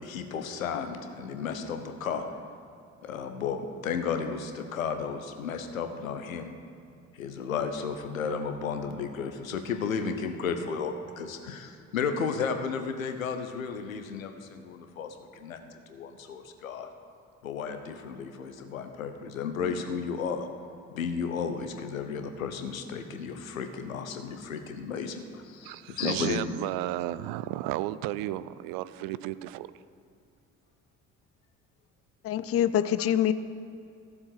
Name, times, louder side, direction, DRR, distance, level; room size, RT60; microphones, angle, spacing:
voice 1, 0.0-2.2 3.0-6.5 7.1-16.9 17.4-20.5 20.9-26.4, left 6 dB, 85° left, 7 dB, 0.9 m, -33 dB
voice 2, 25.6-29.7, right 15 dB, 60° right, 16 dB, 0.6 m, -33 dB
voice 3, 32.2-33.3, left 10 dB, 35° left, 14 dB, 0.6 m, -25 dB
14.5 x 7.2 x 6.6 m, 2.6 s
figure-of-eight pair, 45°, 40 cm